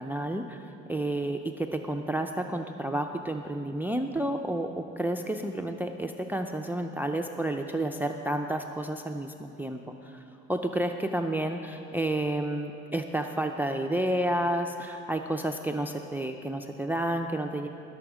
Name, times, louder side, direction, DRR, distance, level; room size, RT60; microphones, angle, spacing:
voice 1, 0.0-10.2 10.5-17.7, right 1 dB, 5° right, 5 dB, 0.5 m, -30 dB
19.5 x 7.1 x 5.0 m, 2.7 s
cardioid pair, 90°, 30 cm